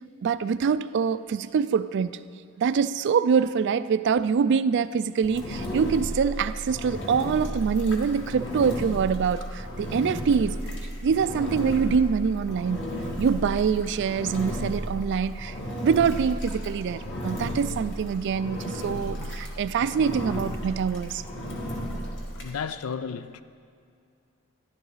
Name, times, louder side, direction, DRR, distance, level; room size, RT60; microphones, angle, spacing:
voice 1, 0.2-2.1 2.6-10.6 11.0-12.8 13.2-15.5 15.8-21.2, right 6 dB, 55° right, 0.3 m, -25 dB
Engine, 5.2-22.5, equal, 55° left, 1.8 m, -34 dB
voice 2, 21.8-22.1 22.3-23.4, left 6 dB, 75° left, 0.4 m, -35 dB
14.0 x 11.0 x 4.0 m
head